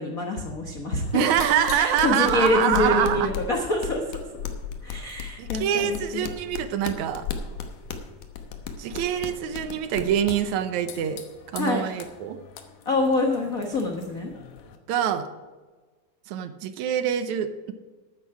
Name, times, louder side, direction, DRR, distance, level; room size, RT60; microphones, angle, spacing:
voice 1, 0.0-1.3 1.7-4.2 4.8-6.3 11.6-11.8 12.8-14.3, left 2 dB, 65° left, 2 dB, 0.8 m, -26 dB
sound 1, 1.0-14.8, left 7 dB, 85° left, 2.6 m, -37 dB
voice 2, 1.1-3.3 5.4-7.3 8.8-11.2 11.5-12.4 14.9-15.3 16.3-17.7, right 9 dB, 75° right, 10 dB, 2.1 m, -25 dB
13.0 x 9.2 x 4.8 m, 1.3 s
omnidirectional pair, 3.5 m